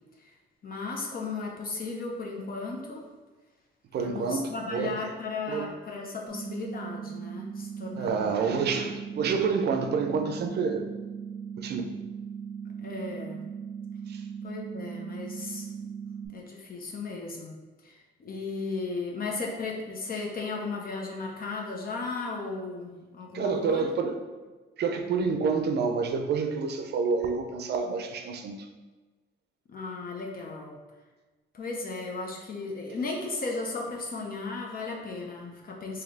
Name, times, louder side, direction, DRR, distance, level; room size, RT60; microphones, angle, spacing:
voice 1, 0.6-3.1 3.9-8.7 12.8-13.4 14.4-15.7 16.3-17.6 17.8-23.9 29.7-30.8 31.5-36.0, left 3 dB, 45° left, 0 dB, 0.6 m, -35 dB
voice 2, 3.9-4.9 5.5-5.7 8.0-10.9 11.6-11.9 14.1-14.2 23.3-24.2 24.8-28.7, right 5 dB, 55° right, 6 dB, 0.5 m, -28 dB
sound 1, 6.3-16.3, right 7 dB, 15° left, 1.2 m, -38 dB
3.2 x 2.8 x 3.8 m, 1.3 s
cardioid pair, 90°, 20 cm